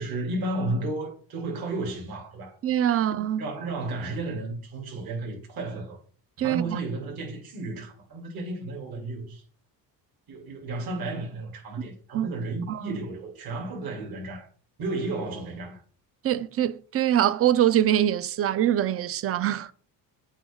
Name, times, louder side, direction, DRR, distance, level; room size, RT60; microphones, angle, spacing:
voice 1, 0.0-2.5 3.4-6.0 6.4-9.4 10.3-14.5 14.8-15.8, right 2 dB, 60° right, 2.7 m, -33 dB
voice 2, 2.6-3.5 6.4-6.8 12.1-12.3 12.7-13.0 16.2-19.7, right 11 dB, 35° right, 0.4 m, -24 dB
8.5 x 3.1 x 3.5 m
cardioid pair, 120°, 40 cm